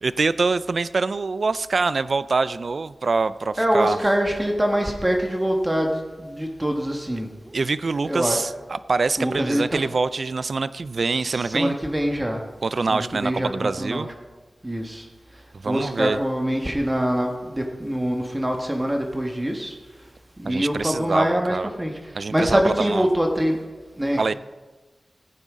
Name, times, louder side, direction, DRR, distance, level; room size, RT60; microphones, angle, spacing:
voice 1, 0.0-4.0 7.5-11.8 12.6-14.1 15.5-16.2 20.4-21.7 22.2-23.1 24.2-24.3, right 4 dB, 65° right, 16 dB, 0.3 m, -25 dB
voice 2, 3.6-7.5 8.0-8.4 9.2-9.6 11.3-12.4 12.9-14.0 14.6-15.0 15.6-19.7 20.4-21.9 22.3-23.6 24.0-24.3, equal, 15° right, 2 dB, 1.5 m, -24 dB
15.5 x 9.1 x 3.7 m, 1.3 s
wide cardioid pair, 65°, 0 cm